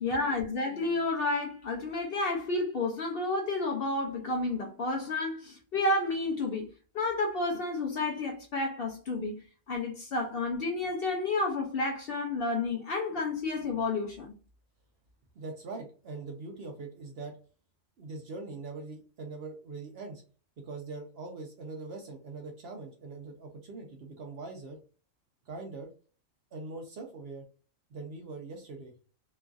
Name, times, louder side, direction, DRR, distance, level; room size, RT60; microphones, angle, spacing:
voice 1, 0.0-6.7 6.9-9.4 9.7-14.3, left 2 dB, 55° left, 0.7 m, -31 dB
voice 2, 15.3-17.4 18.0-20.2 20.6-24.8 25.5-25.9 26.5-27.4 27.9-28.9, right 3 dB, 60° right, 0.7 m, -42 dB
3.0 x 2.5 x 2.3 m
omnidirectional pair, 1.4 m